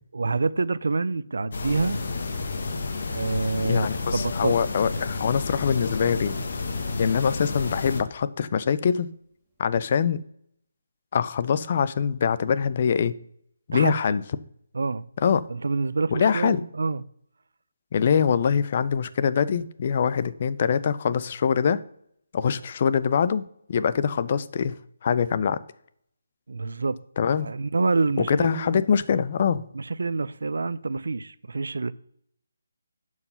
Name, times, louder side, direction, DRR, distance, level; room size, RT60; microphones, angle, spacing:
voice 1, 0.1-2.0 3.1-3.9 4.1-4.6 13.7-14.2 14.7-15.1 15.5-17.0 26.5-27.0 27.4-28.8 29.7-31.9, right 3 dB, 75° right, 0.5 m, -27 dB
sound 1, 1.5-8.0, left 3 dB, 55° left, 1.2 m, -31 dB
voice 2, 3.7-6.4 7.0-9.1 9.6-10.2 11.1-13.1 13.7-14.2 15.2-15.4 16.1-16.6 17.9-21.8 22.3-25.6 27.2-27.5 28.3-29.6, left 7 dB, 35° left, 0.4 m, -24 dB
Piano, 7.5-10.1, left 6 dB, ahead, 1.7 m, -52 dB
11.0 x 4.8 x 5.6 m
hypercardioid pair, 165°, 0 cm